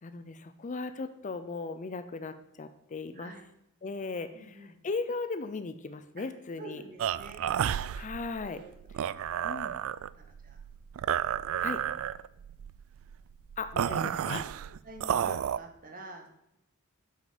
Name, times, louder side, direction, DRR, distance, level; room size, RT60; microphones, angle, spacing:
voice 1, 0.0-3.3 3.8-6.8 7.9-8.6 9.4-9.7 11.6-11.8 13.6-14.4, left 4 dB, 35° left, 11 dB, 0.5 m, -37 dB
voice 2, 4.3-4.8 6.2-6.3 6.6-7.4 8.4-8.7 10.1-10.6 11.6-11.7 14.8-16.3, right 3 dB, 40° right, 3 dB, 1.5 m, -47 dB
sound 1, 7.0-15.6, right 9 dB, 65° right, 0.3 m, -32 dB
7.7 x 6.5 x 5.1 m, 0.83 s
head